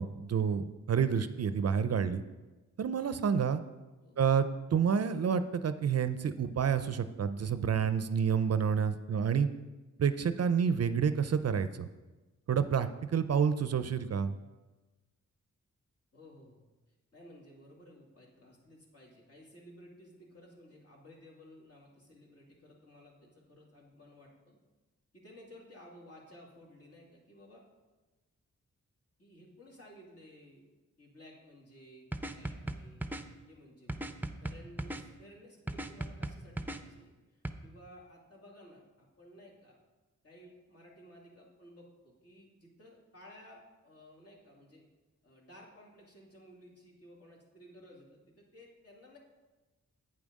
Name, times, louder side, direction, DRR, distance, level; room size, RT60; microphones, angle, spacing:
voice 1, 0.0-2.2 2.8-3.6 4.2-9.5 10.0-11.9 12.5-14.3, right 7 dB, 55° right, 11 dB, 0.5 m, -29 dB
voice 2, 16.1-16.6 17.1-24.6 25.1-27.6 29.2-30.7 31.0-33.1 33.5-39.8 40.2-44.8 45.2-49.2, equal, 50° left, -3 dB, 2.6 m, -56 dB
sound 1, 32.1-33.2 33.9-35.0 35.7-36.8 37.4-37.5, right 1 dB, 5° right, 0.5 m, -37 dB
8.8 x 7.1 x 5.2 m, 1.2 s
wide cardioid pair, 80°, 31 cm